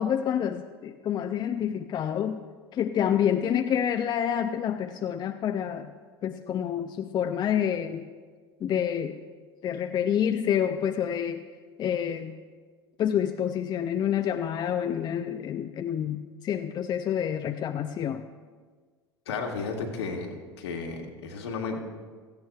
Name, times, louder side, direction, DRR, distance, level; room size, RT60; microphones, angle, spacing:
voice 1, 0.0-2.4 2.7-5.9 6.2-8.1 8.6-9.2 9.6-11.4 11.8-12.4 13.0-18.3, left 9 dB, 30° left, 8 dB, 0.5 m, -28 dB
voice 2, 19.2-21.8, left 4 dB, 70° left, 1 dB, 1.7 m, -33 dB
17.0 x 14.5 x 2.3 m, 1.5 s
figure-of-eight pair, 80°, 14 cm